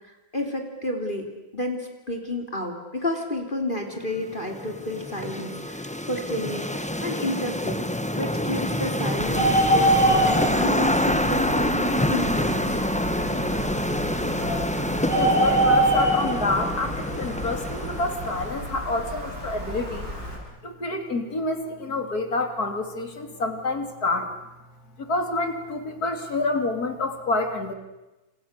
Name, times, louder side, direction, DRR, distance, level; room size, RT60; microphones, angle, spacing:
voice 1, 0.3-1.3 1.5-7.8 8.2-12.8, left 1 dB, 25° left, 4 dB, 3.4 m, -31 dB
sound 1, 4.2-18.7, left 1 dB, 5° left, 1.0 m, -27 dB
Bird, 9.2-20.4, right 1 dB, 50° right, 8.0 m, -26 dB
voice 2, 15.1-20.1 20.6-24.3 25.0-27.7, left 2 dB, 50° left, 6 dB, 3.5 m, -28 dB
30.0 x 28.0 x 6.7 m, 1.0 s
omnidirectional pair, 2.1 m